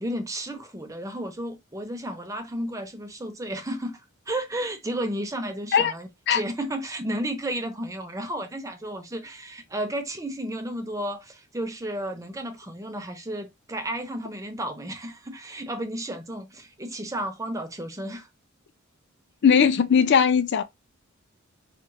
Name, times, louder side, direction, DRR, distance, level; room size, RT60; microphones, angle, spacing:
voice 1, 0.0-18.3, right 1 dB, 15° right, 0.6 m, -33 dB
voice 2, 19.4-20.6, left 7 dB, 55° left, 0.4 m, -19 dB
4.6 x 2.4 x 2.8 m
head